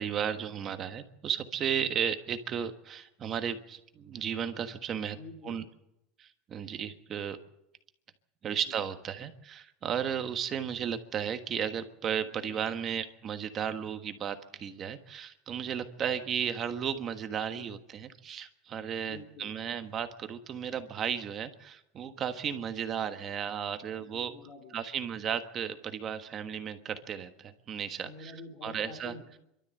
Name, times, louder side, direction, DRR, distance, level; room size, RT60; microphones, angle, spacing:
voice 1, 0.0-5.2 5.4-5.6 6.2-7.4 8.4-24.3 24.7-28.3 28.6-29.1, right 8 dB, 25° right, 8 dB, 1.3 m, -34 dB
voice 2, 5.1-5.6 8.4-8.8 12.2-12.6 17.5-17.7 19.1-19.5 24.0-24.8 28.0-29.4, left 3 dB, 50° left, 1 dB, 3.6 m, -48 dB
28.0 x 13.0 x 7.7 m, 0.82 s
supercardioid pair, 165°, 0 cm